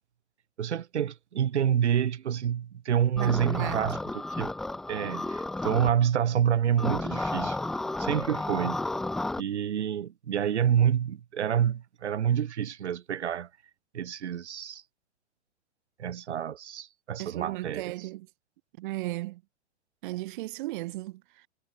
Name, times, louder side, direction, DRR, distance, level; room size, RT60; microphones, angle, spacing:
voice 1, 0.6-4.5 4.9-7.6 8.0-8.8 9.4-13.5 13.9-14.8 16.0-17.9, right 9 dB, 75° right, 1.0 m, -28 dB
sound 1, 3.2-5.9 6.8-9.4, left 2 dB, ahead, 0.3 m, -32 dB
voice 2, 3.2-3.9 17.2-18.3 18.8-19.4 20.0-21.5, right 18 dB, 45° right, 2.5 m, -36 dB
hypercardioid pair, 120°, 34 cm